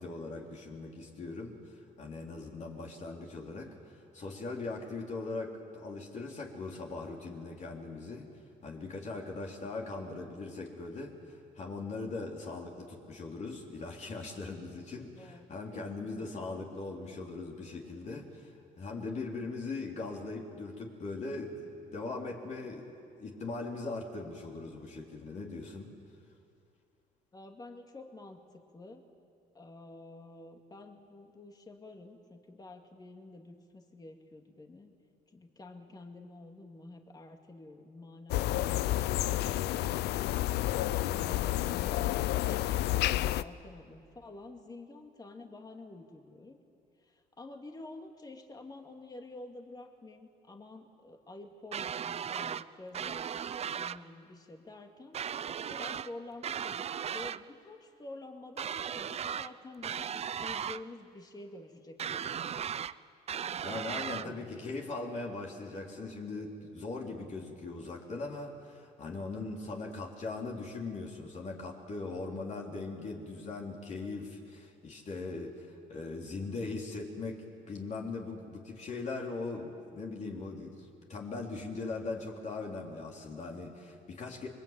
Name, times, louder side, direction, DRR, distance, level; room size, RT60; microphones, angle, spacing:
voice 1, 0.0-8.3 8.6-22.9 23.2-25.9 63.6-84.5, left 3 dB, 45° left, 0 dB, 3.7 m, -40 dB
voice 2, 15.2-15.5 15.7-16.6 27.3-29.0 29.5-34.9 35.3-46.6 47.0-53.4 53.7-62.7 64.2-64.7, left 2 dB, 25° left, 3 dB, 2.3 m, -49 dB
sound 1, 38.3-43.4, left 14 dB, 75° left, 0.6 m, -30 dB
sound 2, 51.7-52.6 52.9-54.0 55.1-56.1 56.4-57.4 58.6-59.5 59.8-60.8 62.0-62.9 63.3-64.3, right 8 dB, 40° right, 0.6 m, -36 dB
28.0 x 23.0 x 9.0 m, 2.4 s
cardioid pair, 110°, 17 cm